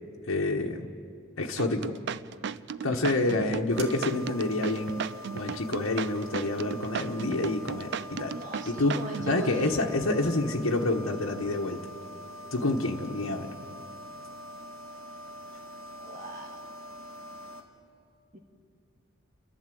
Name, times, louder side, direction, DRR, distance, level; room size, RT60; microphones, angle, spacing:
voice 1, 0.3-0.9 1.4-2.0 2.8-5.0 5.3-8.4 8.7-9.0 9.3-11.8 12.5-13.5, left 2 dB, 85° left, 0 dB, 1.2 m, -28 dB
sound 1, 1.6-9.4, right 6 dB, 55° right, 0.4 m, -35 dB
sound 2, 3.7-17.6, equal, 90° right, 1.9 m, -44 dB
voice 2, 8.3-9.8 16.0-16.6 18.3-18.4, right 2 dB, 40° right, 2 dB, 1.9 m, -39 dB
29.5 x 11.5 x 7.7 m, 2.3 s
head